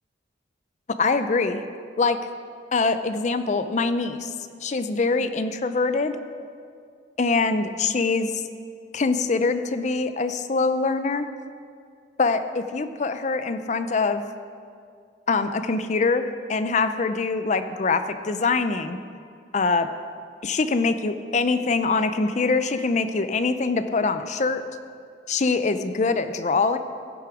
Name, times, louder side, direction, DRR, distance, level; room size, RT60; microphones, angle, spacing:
voice 1, 1.0-1.6 2.0-2.2 2.7-4.3 4.6-6.2 7.2-8.4 8.9-11.3 12.2-14.2 15.3-19.0 19.5-19.9 20.4-24.6 25.3-26.8, left 4 dB, 40° left, 10 dB, 0.5 m, -24 dB
15.5 x 6.8 x 4.9 m, 2.2 s
head